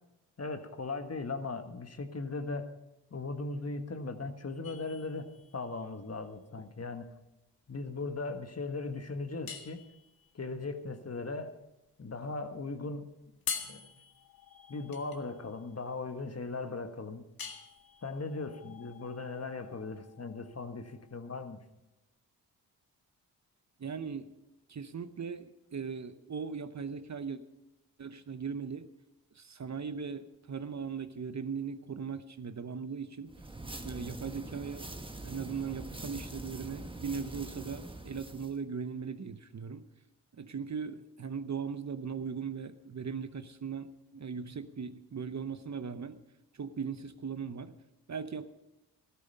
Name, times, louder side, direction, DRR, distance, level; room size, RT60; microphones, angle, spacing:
voice 1, 0.4-2.7 3.1-7.0 7.7-9.8 10.3-11.5 12.0-13.1 13.7-14.0 14.7-17.2 18.0-21.6, left 3 dB, 35° left, 8 dB, 1.5 m, -38 dB
sound 1, 4.6-21.5, left 6 dB, 55° left, 1.9 m, -47 dB
voice 2, 23.8-24.3 24.7-27.4 28.0-28.9 29.3-33.3 33.8-34.9 35.2-39.8 40.3-46.2 46.6-47.7 48.1-48.5, right 6 dB, 40° right, 11 dB, 0.9 m, -39 dB
sound 2, 33.3-38.6, right 2 dB, 10° right, 1.4 m, -44 dB
13.5 x 13.0 x 5.4 m, 0.94 s
supercardioid pair, 50°, 42 cm